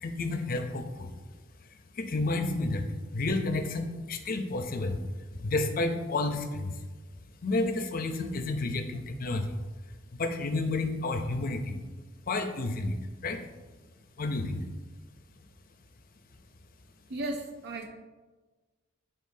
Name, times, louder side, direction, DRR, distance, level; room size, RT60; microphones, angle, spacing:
voice 1, 0.0-1.1 2.0-2.9 3.1-5.0 5.3-6.7 7.4-9.6 10.1-11.8 12.3-12.9 13.2-13.4 14.2-14.6, left 2 dB, 45° left, 6 dB, 0.6 m, -30 dB
voice 2, 17.1-17.9, right 2 dB, 55° right, 4 dB, 0.5 m, -35 dB
9.4 x 3.8 x 2.7 m, 1.3 s
head